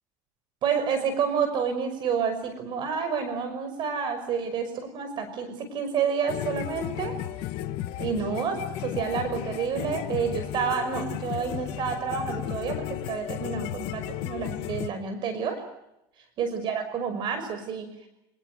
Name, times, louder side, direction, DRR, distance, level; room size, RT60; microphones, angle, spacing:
voice 1, 0.6-7.1 8.0-15.6 16.4-17.9, right 6 dB, 55° right, 9 dB, 5.7 m, -29 dB
sound 1, 6.3-14.9, left 13 dB, 70° left, 1.8 m, -34 dB
28.0 x 19.0 x 9.4 m, 0.86 s
supercardioid pair, 110°, 10 cm